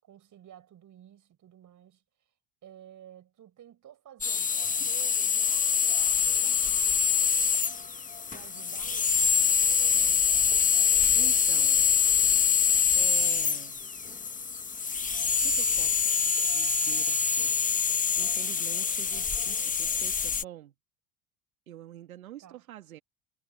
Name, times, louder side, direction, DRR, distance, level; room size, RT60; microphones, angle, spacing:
voice 1, 0.0-2.0 2.6-7.1 8.3-10.2 22.4-22.6, right 11 dB, 45° right, 7.4 m, -52 dB
sound 1, 4.2-20.4, left 6 dB, 20° left, 1.2 m, -25 dB
voice 2, 11.1-11.9 12.9-13.9 15.4-16.1 16.4-17.6 17.9-20.7 21.7-23.0, right 12 dB, 90° right, 1.9 m, -46 dB
hypercardioid pair, 70°, 41 cm